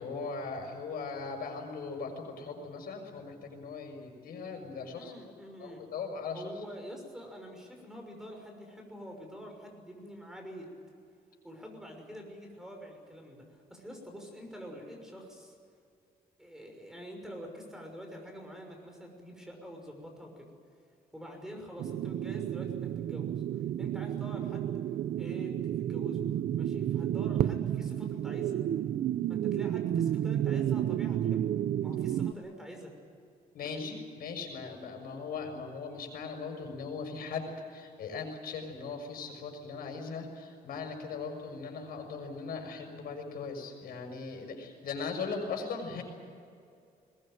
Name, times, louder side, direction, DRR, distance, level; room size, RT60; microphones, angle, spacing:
voice 1, 0.0-5.1 5.6-6.4 33.5-46.0, left 4 dB, 75° left, 3 dB, 6.4 m, -39 dB
voice 2, 5.0-5.8 6.3-10.7 11.4-15.5 16.4-20.5 21.1-23.4 23.8-24.7 25.2-26.2 26.6-28.6 29.3-31.5 31.8-32.9 33.6-34.0, equal, 5° right, 2 dB, 6.1 m, -46 dB
sound 1, 21.8-32.3, right 11 dB, 65° right, 0.7 m, -31 dB
21.5 x 21.5 x 9.2 m, 2.4 s
cardioid pair, 140°, 16 cm